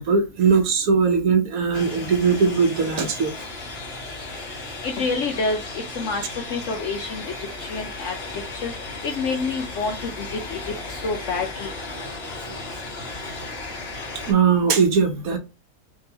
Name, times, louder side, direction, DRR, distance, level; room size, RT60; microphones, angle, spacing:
voice 1, 0.0-3.3 12.4-12.6 14.3-15.4, right 5 dB, 65° right, 1.1 m, -20 dB
sound 1, 1.7-14.3, left 2 dB, 40° left, 1.1 m, -35 dB
voice 2, 4.8-6.2 6.5-7.3 7.6-8.7 9.0-10.6 10.9-11.7, left 4 dB, 65° left, 0.7 m, -28 dB
3.7 x 2.8 x 2.8 m
omnidirectional pair, 1.7 m